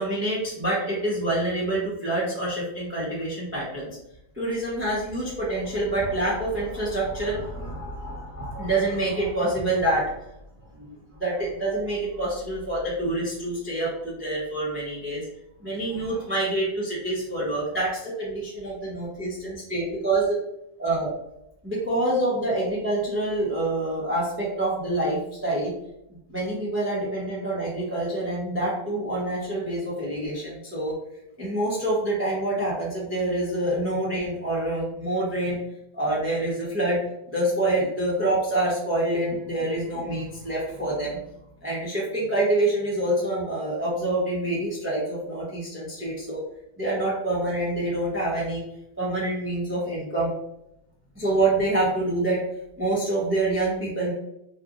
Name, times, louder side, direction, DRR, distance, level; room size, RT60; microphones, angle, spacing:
voice 1, 0.0-3.9 4.3-10.3 10.7-15.2 15.6-20.4 20.8-21.1 21.6-25.7 26.3-30.9 31.4-35.6 35.9-37.0 37.3-41.2 41.6-46.4 46.8-48.6 49.0-50.3 51.1-52.4 52.8-54.1, right 2 dB, 20° right, -7 dB, 0.3 m, -26 dB
3.2 x 3.0 x 2.5 m, 0.82 s
omnidirectional pair, 2.0 m